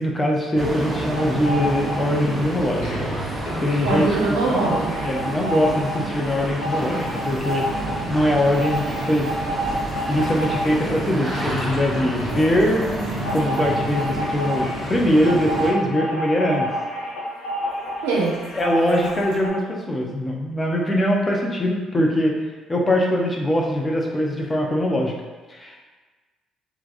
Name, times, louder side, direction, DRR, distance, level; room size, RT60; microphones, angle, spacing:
voice 1, 0.0-3.1 3.6-4.1 4.5-4.6 5.0-7.7 8.1-9.3 10.1-12.9 13.3-16.7 18.5-22.3 22.7-25.1 25.5-25.8, left 1 dB, 25° left, -1 dB, 0.6 m, -22 dB
sound 1, 0.6-15.7, right 1 dB, 15° right, 0.8 m, -29 dB
sound 2, 1.2-2.4 2.7-19.5, equal, 75° left, 0.7 m, -29 dB
voice 2, 3.8-5.2 18.0-18.4, right 3 dB, 80° right, -4 dB, 0.7 m, -22 dB
3.3 x 2.4 x 2.5 m, 1.3 s
hypercardioid pair, 55°, 0 cm